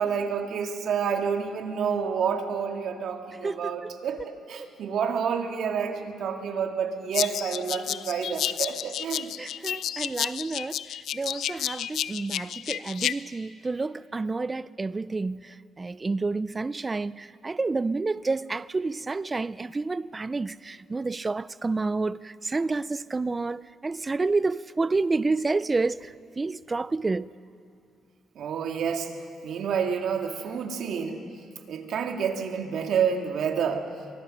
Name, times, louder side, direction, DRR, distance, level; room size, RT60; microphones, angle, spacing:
voice 1, 0.0-9.3 28.4-29.1 29.4-31.2 31.7-33.9, right 7 dB, 70° right, 2.1 m, -29 dB
voice 2, 3.4-3.9 4.6-4.7 9.4-27.3, right 3 dB, 25° right, 0.4 m, -29 dB
sound 1, 7.1-13.1, left 10 dB, 75° left, 0.5 m, -31 dB
24.0 x 18.5 x 6.5 m
cardioid pair, 90°, 0 cm